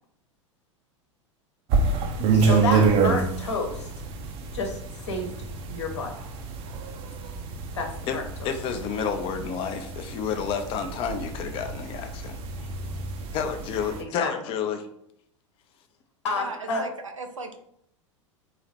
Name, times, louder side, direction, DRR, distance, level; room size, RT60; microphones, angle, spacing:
sound 1, 1.7-14.0, right 5 dB, 35° right, 0.7 m, -27 dB
voice 1, 2.1-3.9 4.5-5.3 5.7-6.1 7.7-8.5 14.0-14.3 16.2-16.8, left 3 dB, 60° left, 2 dB, 1.2 m, -30 dB
voice 2, 8.4-12.4 13.3-14.9, left 7 dB, 35° left, 7 dB, 0.7 m, -30 dB
voice 3, 16.4-17.6, right 3 dB, 80° right, 5 dB, 0.7 m, -37 dB
4.0 x 2.9 x 4.4 m, 0.71 s
figure-of-eight pair, 85°, 16 cm